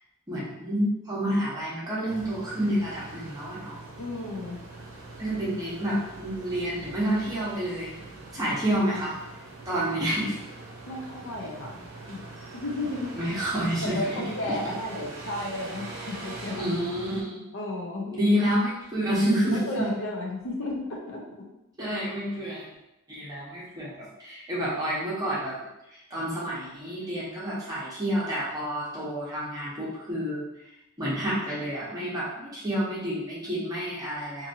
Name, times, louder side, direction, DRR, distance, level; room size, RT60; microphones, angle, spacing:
voice 1, 0.3-3.7 5.2-7.9 8.3-9.1 9.7-10.4 13.2-14.2 16.5-17.4 18.1-19.6 21.8-22.7 23.1-25.5 26.1-30.4 31.0-34.5, equal, 15° right, -8 dB, 0.9 m, -29 dB
sound 1, 2.1-17.2, right 2 dB, 65° right, 0.7 m, -43 dB
voice 2, 4.0-4.6 10.9-12.2 12.5-13.2 13.8-16.6 17.5-18.1 19.5-21.5, left 1 dB, 60° left, -1 dB, 0.5 m, -33 dB
2.8 x 2.6 x 2.6 m, 0.89 s
head